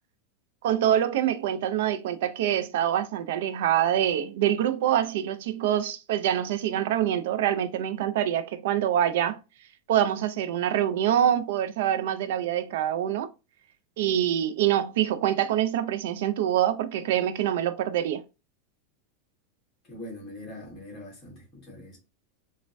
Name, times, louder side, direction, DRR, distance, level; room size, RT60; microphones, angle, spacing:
voice 1, 0.6-9.4 9.9-13.3 14.0-18.2, right 11 dB, 60° right, 0.3 m, -25 dB
voice 2, 19.9-22.0, left 1 dB, 20° left, 1.4 m, -42 dB
3.2 x 2.0 x 2.5 m
supercardioid pair, 175°, 0 cm